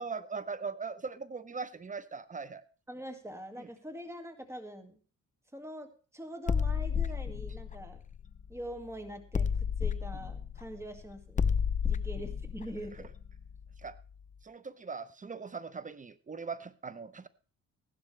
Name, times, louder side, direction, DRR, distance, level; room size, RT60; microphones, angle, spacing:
voice 1, 0.0-2.6 13.8-14.0 14.4-17.3, right 5 dB, 25° right, 15 dB, 0.8 m, -40 dB
voice 2, 2.9-5.0 5.5-8.0 8.5-13.1, right 1 dB, 10° right, 6 dB, 2.1 m, -44 dB
sound 1, 6.5-8.8 9.3-14.0, left 6 dB, 25° left, 0.7 m, -32 dB
15.5 x 11.5 x 3.3 m, 0.37 s
cardioid pair, 90°, 30 cm